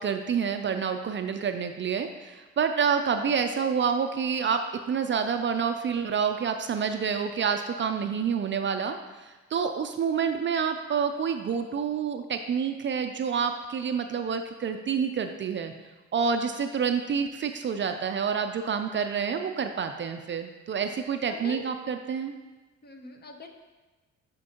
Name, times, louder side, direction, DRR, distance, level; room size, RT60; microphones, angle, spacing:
voice 1, 0.0-15.7 16.1-22.3, right 6 dB, 40° right, 7 dB, 0.4 m, -28 dB
voice 2, 21.3-21.6 22.8-23.5, left 4 dB, 35° left, 4 dB, 0.8 m, -43 dB
8.6 x 4.4 x 2.9 m, 1.2 s
cardioid pair, 90°, 30 cm